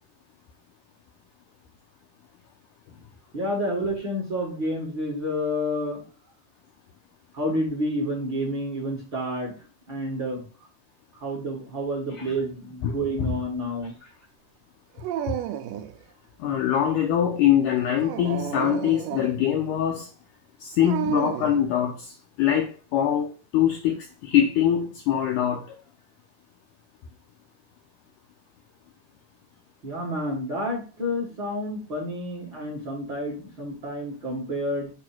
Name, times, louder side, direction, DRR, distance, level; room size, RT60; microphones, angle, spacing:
voice 1, 3.3-6.0 7.3-9.5 9.9-10.4 11.1-14.0 29.8-34.9, equal, 45° right, 1.7 m, -29 dB
Dog, 15.0-16.0 17.9-19.4 20.9-21.6, right 10 dB, 85° right, 1.9 m, -31 dB
voice 2, 16.4-20.1 20.6-25.8, left 10 dB, 80° left, 1.9 m, -23 dB
6.8 x 2.9 x 5.9 m
omnidirectional pair, 4.5 m